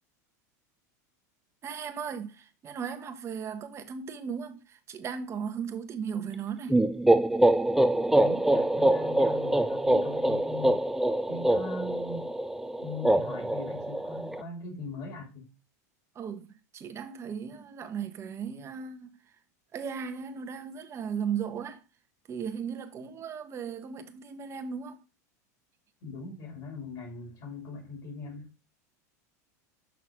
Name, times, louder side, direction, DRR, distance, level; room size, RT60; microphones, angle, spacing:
voice 1, 1.6-6.8 16.1-19.2 19.7-21.8 22.3-25.0, right 7 dB, 30° right, 1.1 m, -36 dB
sound 1, 6.7-14.4, right 1 dB, 5° right, 0.4 m, -25 dB
voice 2, 8.2-10.8 11.3-12.3 12.8-15.5 26.0-28.5, left 3 dB, 50° left, 2.7 m, -40 dB
6.1 x 5.8 x 3.6 m
supercardioid pair, 120°, 9 cm